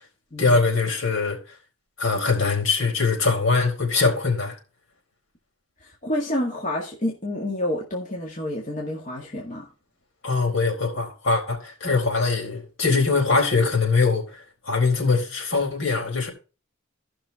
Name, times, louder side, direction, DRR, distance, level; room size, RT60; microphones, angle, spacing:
voice 1, 0.4-1.4 2.0-4.5 10.2-16.3, left 4 dB, 65° left, 4.3 m, -22 dB
voice 2, 5.8-9.7, left 1 dB, 35° left, 2.0 m, -29 dB
15.5 x 6.1 x 3.5 m
head